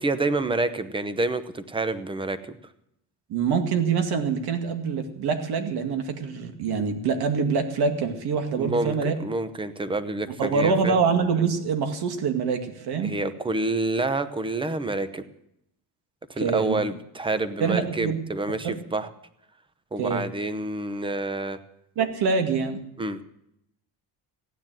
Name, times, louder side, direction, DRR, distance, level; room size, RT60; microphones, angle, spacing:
voice 1, 0.0-2.4 8.6-10.9 13.0-15.2 16.3-19.1 19.9-21.6 23.0-23.2, right 2 dB, 10° right, 13 dB, 0.8 m, -28 dB
voice 2, 3.3-9.1 10.4-13.1 16.4-16.8 17.6-18.2 18.6-18.8 20.0-20.2 22.0-22.8, right 5 dB, 65° right, 7 dB, 2.2 m, -25 dB
15.0 x 9.8 x 7.6 m, 0.80 s
cardioid pair, 130°, 41 cm